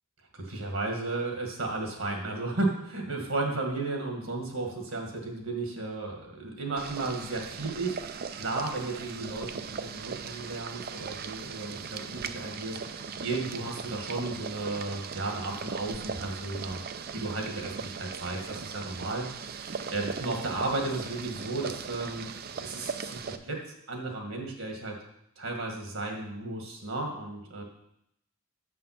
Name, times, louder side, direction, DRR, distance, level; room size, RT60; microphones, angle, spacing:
voice 1, 0.3-16.8 17.1-22.2 22.6-23.6 23.9-24.9 25.4-27.6, right 2 dB, 65° right, 1 dB, 1.8 m, -34 dB
Boiling, 6.8-23.4, right 6 dB, 45° right, 0.4 m, -39 dB
7.5 x 5.6 x 5.9 m, 0.77 s
head